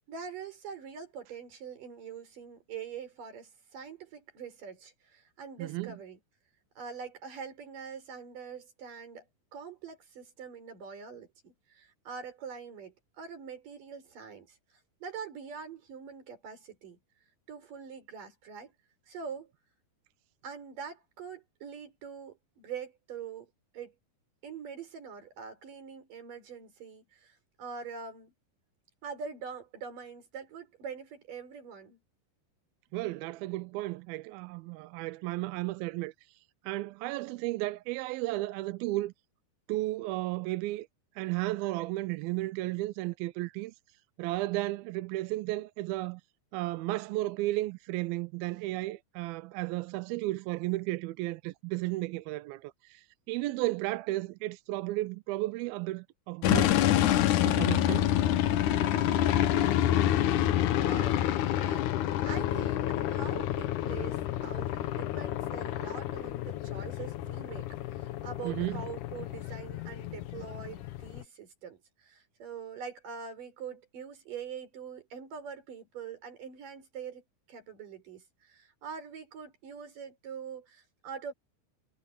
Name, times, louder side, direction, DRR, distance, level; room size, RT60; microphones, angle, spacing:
voice 1, 0.0-6.2 6.8-9.3 9.5-17.0 17.5-18.7 19.1-19.5 20.4-23.5 23.7-23.9 24.4-28.3 29.0-32.0 60.3-81.3, right 6 dB, 55° right, 5.9 m, -44 dB
voice 2, 5.6-6.0 32.9-36.1 36.6-39.1 39.7-40.9 41.2-43.7 44.2-46.2 46.5-56.8 57.4-58.2 68.4-68.8, right 19 dB, 80° right, 2.2 m, -33 dB
sound 1, 56.4-71.2, left 12 dB, 75° left, 1.9 m, -28 dB
omnidirectional pair, 4.8 m